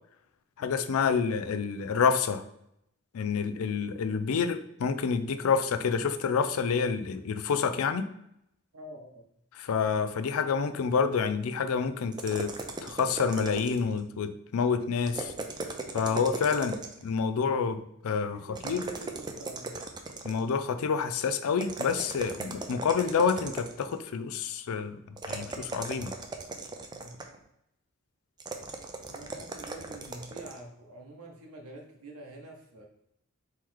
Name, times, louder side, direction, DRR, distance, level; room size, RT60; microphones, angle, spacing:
voice 1, 0.6-2.4 3.1-8.1 9.5-12.5 12.8-15.3 15.9-18.4 18.6-18.8 20.2-25.0 25.3-26.1, left 6 dB, 70° left, 11 dB, 0.4 m, -28 dB
voice 2, 8.7-9.2 18.3-19.8 26.9-27.2 29.1-32.8, right 2 dB, 85° right, 0 dB, 0.8 m, -47 dB
sound 1, 12.1-14.0 15.0-17.1 18.6-20.5 21.6-24.0 25.2-27.4 28.4-30.6, right 3 dB, 20° right, 0.4 m, -38 dB
4.5 x 3.1 x 3.7 m, 0.77 s
head